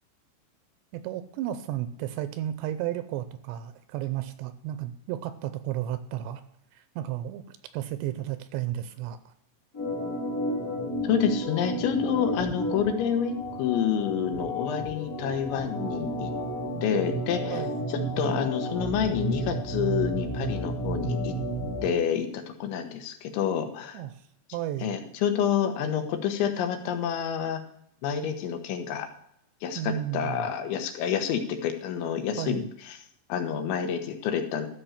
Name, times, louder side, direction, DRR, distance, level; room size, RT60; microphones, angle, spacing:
voice 1, 0.9-6.4 6.7-9.3 17.5-17.9 23.9-24.3 24.5-25.0 29.8-30.5 32.4-32.7, right 12 dB, 80° right, 11 dB, 2.7 m, -33 dB
Organ, 9.7-21.9, right 1 dB, 30° left, 1.7 m, -32 dB
voice 2, 11.0-13.3 13.6-16.3 16.8-17.6 18.2-21.3 21.8-24.0 24.8-27.6 28.0-29.1 29.6-32.6 33.3-34.7, left 8 dB, 80° left, 7 dB, 3.4 m, -28 dB
13.5 x 5.7 x 7.2 m, 0.72 s
omnidirectional pair, 5.3 m